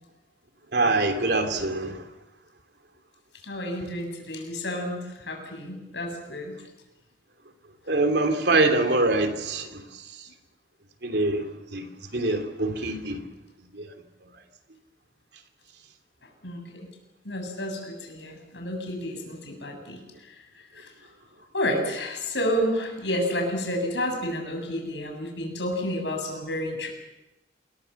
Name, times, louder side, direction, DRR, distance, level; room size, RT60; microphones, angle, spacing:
voice 1, 0.7-2.1 7.9-10.3 11.0-13.2 13.6-13.9, right 2 dB, 70° right, 3.0 m, -25 dB
voice 2, 3.4-6.5 16.2-16.6 17.2-20.4 20.7-21.1 21.5-26.9, equal, 80° left, 7.8 m, -30 dB
29.0 x 20.5 x 7.2 m
head